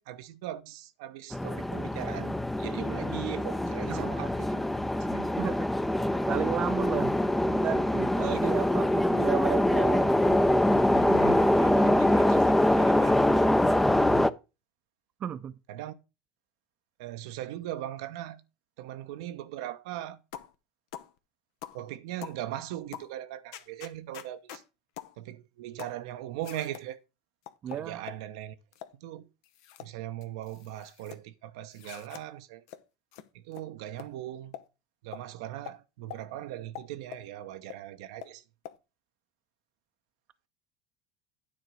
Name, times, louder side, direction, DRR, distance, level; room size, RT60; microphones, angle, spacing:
voice 1, 0.0-4.6 5.0-5.3 8.2-8.6 10.9-14.3 15.7-15.9 17.0-18.4 18.8-20.2 21.7-24.6 25.2-27.0 27.7-28.5 29.0-29.3 29.8-32.6 33.3-34.6 35.0-38.4, right 13 dB, 75° right, 0.8 m, -39 dB
sound 1, 1.3-14.3, left 1 dB, 5° left, 0.6 m, -24 dB
voice 2, 3.8-4.2 5.4-5.7 6.3-7.2 7.5-10.1 15.2-15.5 27.6-28.0, right 9 dB, 40° right, 0.6 m, -33 dB
sound 2, 20.3-20.5 20.9-21.1 21.6-21.8 22.2-22.4 22.9-23.1 23.5-24.6 25.0-25.1 25.8-26.0 26.4-26.9 27.5-28.2 28.7-29.0 29.4-29.9 30.2-31.2 31.7-32.2 32.7-32.8 33.1-33.2 33.5-33.6 34.0-34.1 34.5-34.7 35.1-35.2 35.7-35.8 36.1-36.2 36.7-37.3 37.7-37.8 38.2-38.3 38.6-38.8, left 11 dB, 70° left, 0.9 m, -44 dB
9.5 x 3.9 x 6.2 m
hypercardioid pair, 95°, 3 cm